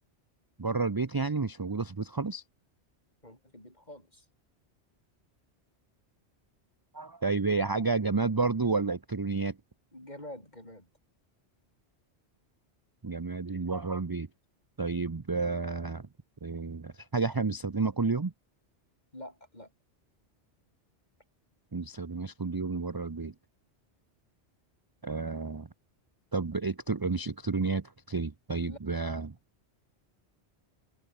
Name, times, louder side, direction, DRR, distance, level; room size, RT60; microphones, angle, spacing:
voice 1, 0.6-2.4 6.9-9.6 13.0-14.3 14.8-16.1 16.4-18.3 21.7-23.3 25.0-25.7 26.3-29.3, right 4 dB, 25° right, 0.6 m, -31 dB
voice 2, 3.2-4.3 9.9-10.9 19.1-19.7 28.6-28.8, left 1 dB, 40° left, 7.2 m, -46 dB
omnidirectional pair, 1.2 m